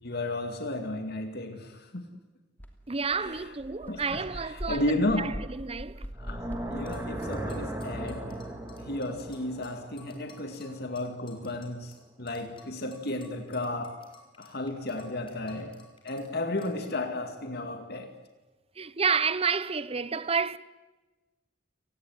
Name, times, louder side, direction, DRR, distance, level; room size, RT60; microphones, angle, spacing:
voice 1, 0.0-2.1 3.2-3.5 3.8-5.3 6.2-8.4 8.8-14.0 14.4-15.8 16.0-18.1, left 1 dB, 55° left, 2.4 m, -33 dB
sound 1, 2.6-2.7 3.0-7.2, equal, 10° left, 2.7 m, -41 dB
voice 2, 2.9-4.8 5.2-6.1 18.8-20.6, right 5 dB, 30° right, 0.9 m, -30 dB
sound 2, 6.1-11.2, right 1 dB, 15° right, 3.8 m, -38 dB
sound 3, 6.9-12.0 12.3-16.3 16.6-16.7, left 4 dB, 30° left, 5.7 m, -55 dB
29.5 x 19.5 x 9.5 m
head